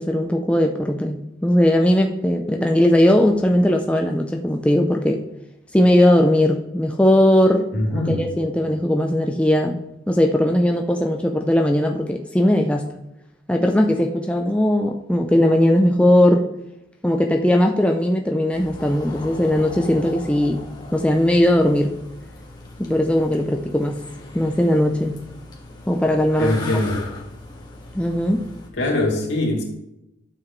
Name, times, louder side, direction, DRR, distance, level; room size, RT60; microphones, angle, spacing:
voice 1, 0.0-5.2 5.7-7.7 8.1-9.8 10.1-12.9 13.5-16.5 17.0-20.6 20.9-21.9 22.8-24.0 24.3-25.1 25.9-26.6 27.9-28.4, left 1 dB, 5° left, 2 dB, 0.5 m, -18 dB
voice 2, 7.7-8.2 26.4-27.1 28.8-29.6, left 1 dB, 70° left, -2 dB, 2.7 m, -22 dB
sound 1, 18.5-28.7, left 2 dB, 25° left, 1.6 m, -39 dB
11.5 x 7.1 x 3.2 m, 0.86 s
head